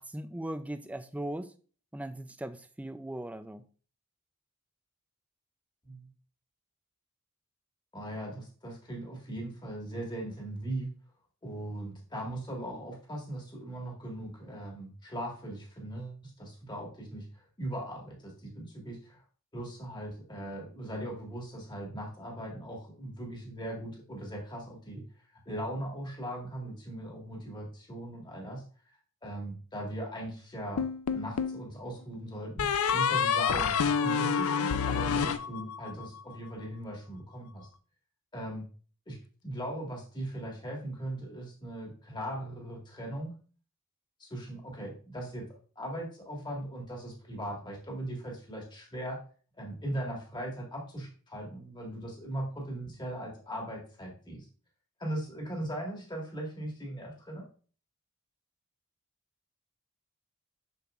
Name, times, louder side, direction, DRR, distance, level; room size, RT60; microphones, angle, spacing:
voice 1, 0.0-1.5 1.9-3.6, right 1 dB, 5° right, 0.3 m, -39 dB
voice 2, 7.9-10.9 11.4-17.3 17.6-19.2 19.5-25.0 25.5-28.6 29.2-30.8 31.1-37.7 38.3-38.6 39.1-39.2 39.4-43.3 44.2-45.4 45.8-49.2 49.6-54.5 55.0-57.4, right 1 dB, 20° left, 1.7 m, -39 dB
sound 1, 30.8-31.6 32.6-36.1, left 6 dB, 75° left, 0.5 m, -28 dB
6.7 x 6.2 x 2.4 m
head